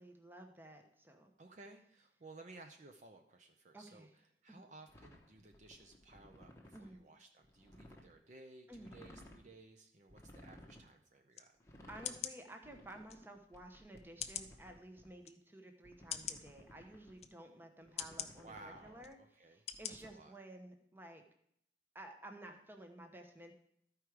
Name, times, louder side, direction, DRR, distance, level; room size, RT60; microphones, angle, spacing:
voice 1, 0.0-1.3 3.7-4.1 4.5-4.6 6.7-7.0 8.7-9.0 11.9-19.2 19.5-21.2 21.9-23.5, right 1 dB, 10° right, 4 dB, 0.8 m, -53 dB
voice 2, 1.4-11.6 18.2-19.6 20.0-20.3, right 2 dB, 40° right, 5 dB, 0.6 m, -57 dB
sound 1, 4.9-7.0 7.4-8.1 8.7-9.5 10.1-10.9 11.6-12.2 12.6-15.1 15.8-17.2 17.8-19.1 19.7-20.1, left 1 dB, 15° left, 0.9 m, -58 dB
sound 2, 11.3-11.5 12.0-12.4 13.1-13.2 14.2-14.5 15.2-15.3 16.1-16.4 17.2-17.3 18.0-18.3 19.0-19.1 19.7-19.9 20.4-20.5, left 10 dB, 35° left, 0.4 m, -42 dB
13.0 x 4.8 x 4.7 m, 0.71 s
head